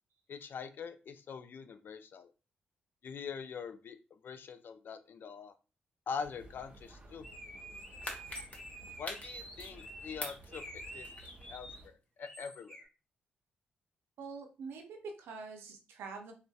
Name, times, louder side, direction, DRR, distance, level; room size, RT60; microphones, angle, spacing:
voice 1, 0.3-2.3 3.0-5.5 6.1-7.3 9.0-11.1 11.5-12.8, left 6 dB, 60° left, 10 dB, 0.3 m, -44 dB
sound 1, 6.2-11.9, right 2 dB, 35° right, 0.7 m, -55 dB
sound 2, 7.2-11.8 12.2-12.8, equal, 20° left, 1.1 m, -49 dB
sound 3, 7.7-9.9 10.2-11.5 11.8-11.9, left 1 dB, 35° left, 0.8 m, -44 dB
voice 2, 14.2-16.3, right 4 dB, 75° right, 4 dB, 0.5 m, -45 dB
2.5 x 2.1 x 2.3 m, 0.32 s
supercardioid pair, 50°, 4 cm